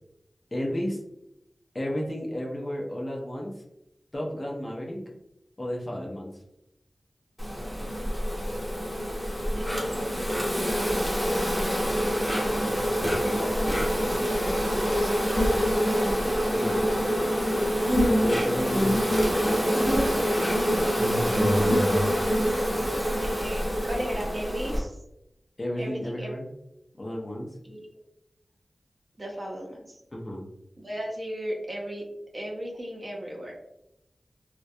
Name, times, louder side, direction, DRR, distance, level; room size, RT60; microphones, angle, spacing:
voice 1, 0.5-1.0 1.7-3.5 4.1-5.0 5.6-6.3 16.5-17.1 18.2-18.9 25.6-26.5 27.0-27.5 30.1-30.4, equal, 35° left, -2 dB, 0.5 m, -32 dB
Insect, 7.4-24.8, equal, ahead, 0.7 m, -25 dB
voice 2, 9.5-10.0 10.9-13.0 13.5-16.0 23.2-25.0 25.8-26.3 27.6-27.8 29.2-30.0 30.8-32.0 32.3-33.5, equal, 30° right, -1 dB, 0.6 m, -37 dB
2.2 x 2.1 x 2.6 m, 0.83 s
wide cardioid pair, 90°, 0 cm